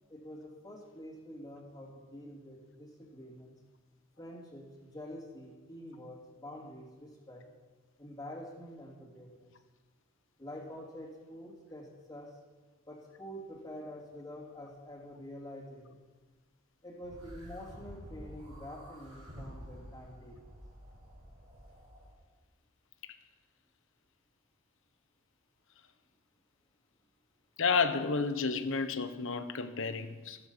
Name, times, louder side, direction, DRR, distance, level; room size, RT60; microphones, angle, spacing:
voice 1, 0.1-3.6 4.2-7.5 8.0-9.5 10.4-12.4 12.9-16.0 16.8-20.5, equal, 20° left, 3.1 m, -47 dB
sound 1, 17.0-22.1, equal, 80° right, 5.3 m, -50 dB
voice 2, 27.6-30.4, left 5 dB, 65° left, 1.2 m, -31 dB
15.5 x 14.0 x 5.7 m
head